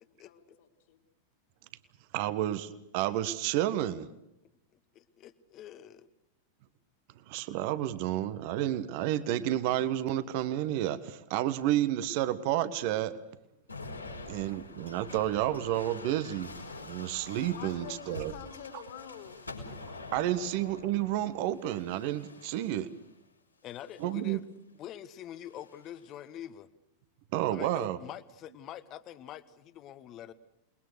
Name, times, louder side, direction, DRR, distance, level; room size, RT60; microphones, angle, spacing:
voice 1, 0.2-1.0 17.5-19.4, left 8 dB, 55° left, 6 dB, 3.3 m, -47 dB
voice 2, 2.1-4.1 7.3-13.2 14.3-16.5 16.8-18.3 20.1-22.9 24.0-24.4 27.3-28.0, right 13 dB, 45° right, 14 dB, 1.4 m, -30 dB
voice 3, 4.9-6.1 23.6-24.4 24.8-26.7 27.5-30.3, left 11 dB, 35° left, 12 dB, 1.4 m, -45 dB
sound 1, 13.7-23.1 23.7-24.3 25.4-26.1, left 3 dB, 85° left, 4.7 m, -46 dB
28.5 x 21.5 x 6.5 m, 0.86 s
figure-of-eight pair, 90°, 0 cm